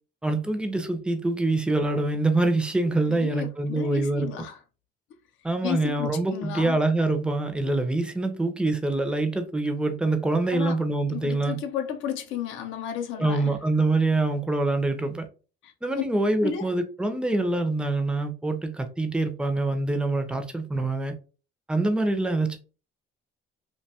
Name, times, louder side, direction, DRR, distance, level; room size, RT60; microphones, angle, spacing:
voice 1, 0.2-4.3 5.4-11.6 13.2-15.3 15.8-21.2 21.7-22.6, right 2 dB, 5° right, 0.4 m, -25 dB
voice 2, 3.1-4.6 5.6-6.8 10.5-10.8 11.1-13.5 15.6-15.7 16.4-16.7, left 8 dB, 75° left, 0.5 m, -33 dB
2.6 x 2.2 x 2.7 m
cardioid pair, 120°, 20 cm